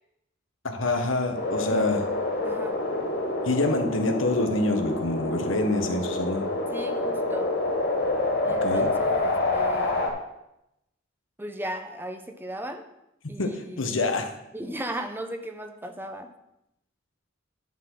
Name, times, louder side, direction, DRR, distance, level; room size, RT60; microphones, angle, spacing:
voice 1, 0.6-2.0 3.4-6.5 8.6-8.9 13.4-14.3, left 2 dB, 80° left, 6 dB, 1.3 m, -26 dB
sound 1, 1.3-10.1, left 2 dB, 60° left, 2.3 m, -27 dB
voice 2, 1.7-2.0 2.4-2.9 6.7-7.5 8.4-10.2 11.4-12.9 13.3-14.0 14.5-16.3, right 1 dB, 10° right, 6 dB, 0.9 m, -36 dB
11.0 x 4.2 x 7.7 m, 0.85 s
head